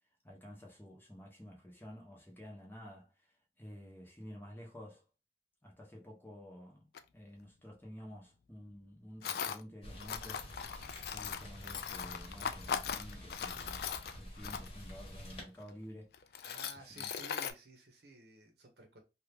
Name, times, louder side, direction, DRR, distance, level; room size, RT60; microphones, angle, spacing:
voice 1, 0.2-5.0 5.6-10.4 11.1-16.4 16.9-17.1, equal, 10° left, 0.8 m, -51 dB
Tools, 6.9-7.0 9.2-9.6 10.0-14.9 15.6-15.7 16.1-17.5, left 7 dB, 60° left, 0.3 m, -39 dB
Rain, 9.8-15.4, equal, 35° left, 1.1 m, -49 dB
voice 2, 16.4-19.0, right 2 dB, 65° right, 0.8 m, -54 dB
2.8 x 2.4 x 3.4 m
head